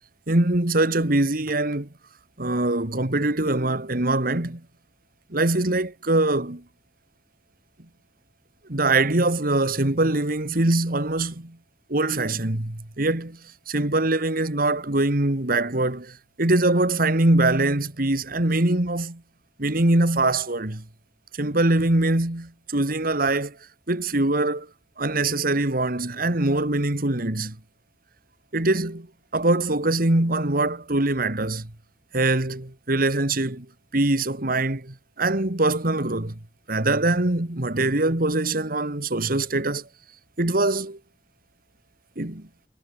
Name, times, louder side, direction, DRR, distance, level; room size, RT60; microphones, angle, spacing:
voice 1, 0.3-1.9 2.4-4.6 5.3-6.6 8.7-11.6 11.9-13.4 13.7-19.2 19.6-20.8 21.4-23.5 23.9-24.7 25.0-27.6 28.5-29.1 29.3-31.7 32.1-33.7 33.9-36.4 36.7-39.8 40.4-41.0 42.2-42.5, right 2 dB, 55° right, 2.2 m, -23 dB
head